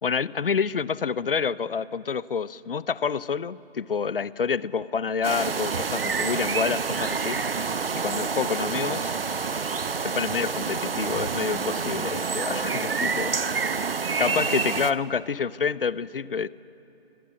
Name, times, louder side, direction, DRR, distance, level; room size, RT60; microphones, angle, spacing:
voice 1, 0.0-7.4 8.0-9.1 10.0-13.9 14.2-16.5, left 6 dB, 60° left, 20 dB, 0.6 m, -28 dB
sound 1, 5.2-14.9, right 5 dB, 60° right, 1.0 m, -28 dB
25.0 x 20.5 x 8.4 m, 2.9 s
figure-of-eight pair, 155°, 32 cm